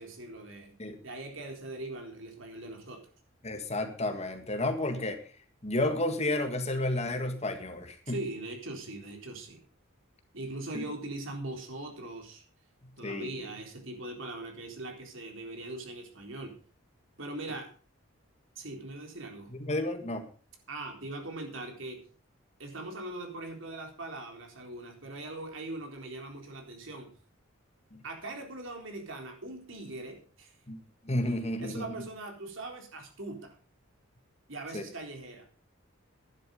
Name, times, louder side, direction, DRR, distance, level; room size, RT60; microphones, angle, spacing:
voice 1, 0.0-0.7 1.0-3.0 8.1-9.6 10.3-12.4 13.0-16.6 17.2-17.7 18.6-19.5 20.7-22.0 22.6-27.1 28.0-30.5 31.2-31.3 31.6-33.6 34.5-35.5, right 2 dB, 65° right, 3 dB, 3.8 m, -41 dB
voice 2, 3.4-5.2 5.6-8.2 10.7-10.8 13.0-13.5 19.5-20.3 27.9-28.0 30.7-31.9 34.7-34.8, left 1 dB, 30° left, 7 dB, 1.7 m, -32 dB
12.0 x 11.0 x 5.4 m, 0.41 s
head